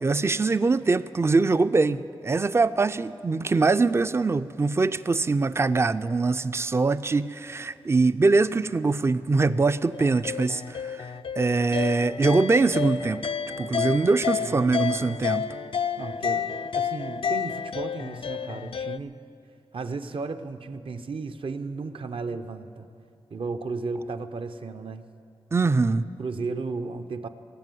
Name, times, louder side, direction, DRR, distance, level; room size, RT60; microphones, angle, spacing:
voice 1, 0.0-11.1 11.4-13.3 13.6-15.5 25.5-26.0, right 3 dB, 25° right, 14 dB, 0.4 m, -23 dB
sound 1, 9.9-19.0, left 7 dB, 60° left, 0.4 m, -30 dB
voice 2, 14.3-15.1 16.0-19.2 19.7-22.9 23.3-25.0 26.2-27.3, right 4 dB, 60° right, 10 dB, 0.7 m, -34 dB
17.0 x 7.5 x 9.2 m, 2.5 s
cardioid pair, 60°, 10 cm